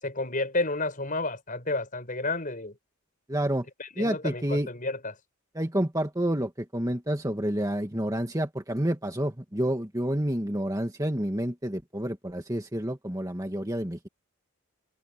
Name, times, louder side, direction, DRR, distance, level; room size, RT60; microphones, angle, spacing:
voice 1, 0.0-2.7 3.8-5.2, left 2 dB, 35° left, 6.1 m, -31 dB
voice 2, 3.3-3.7 4.0-4.7 5.6-14.0, right 1 dB, 15° right, 2.0 m, -29 dB
head